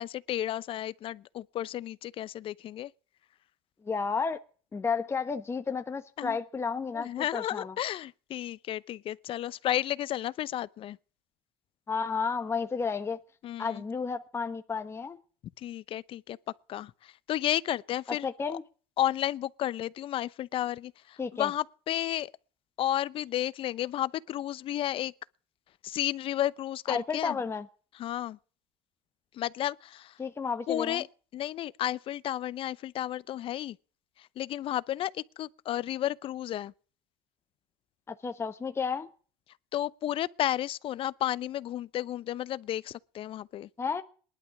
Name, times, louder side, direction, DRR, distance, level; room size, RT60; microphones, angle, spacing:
voice 1, 0.0-2.9 6.2-6.4 6.9-11.0 13.4-13.8 15.6-16.4 16.7-18.6 19.0-22.3 22.8-25.1 25.8-27.4 27.9-28.4 29.3-30.2 30.7-31.1 31.3-33.8 34.2-36.7 39.7-43.7, left 12 dB, 50° left, 0.8 m, -32 dB
voice 2, 3.8-4.4 4.7-7.7 11.9-13.2 13.6-15.2 18.2-18.6 21.2-21.5 26.9-27.7 30.2-31.0 38.1-39.1 43.8-44.0, left 5 dB, 20° left, 1.3 m, -32 dB
19.5 x 11.5 x 6.0 m
supercardioid pair, 95°, 12 cm